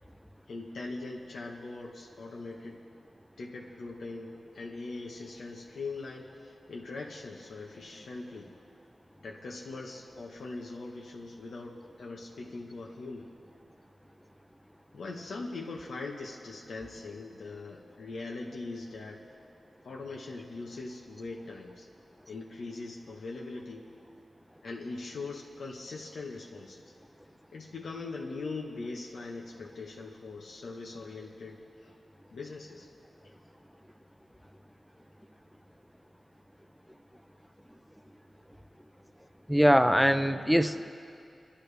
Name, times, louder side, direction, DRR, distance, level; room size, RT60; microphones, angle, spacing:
voice 1, 0.5-2.8 3.4-8.5 9.2-13.3 14.9-19.2 19.8-21.9 22.3-23.9 24.6-26.8 27.5-31.9 32.3-32.9, left 3 dB, 85° left, -2 dB, 1.2 m, -41 dB
voice 2, 39.5-40.9, equal, ahead, 9 dB, 0.5 m, -23 dB
27.5 x 11.5 x 3.4 m, 2.7 s
wide cardioid pair, 160°, 0 cm